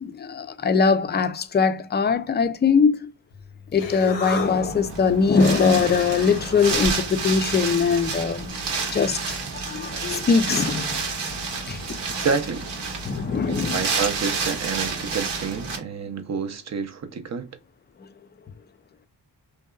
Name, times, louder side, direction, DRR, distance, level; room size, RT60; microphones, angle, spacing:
voice 1, 0.0-3.1 3.7-8.5 8.9-9.4 9.6-10.9 11.7-11.8 13.1-13.8, left 5 dB, 25° left, 0.4 m, -21 dB
Human voice, 3.3-8.5, left 3 dB, 90° left, 0.7 m, -34 dB
Wind, 4.5-15.8, right 4 dB, 75° right, 0.9 m, -30 dB
voice 2, 12.1-12.7 13.5-17.5, right 5 dB, 40° right, 0.5 m, -28 dB
2.6 x 2.2 x 2.3 m
cardioid pair, 55°, 42 cm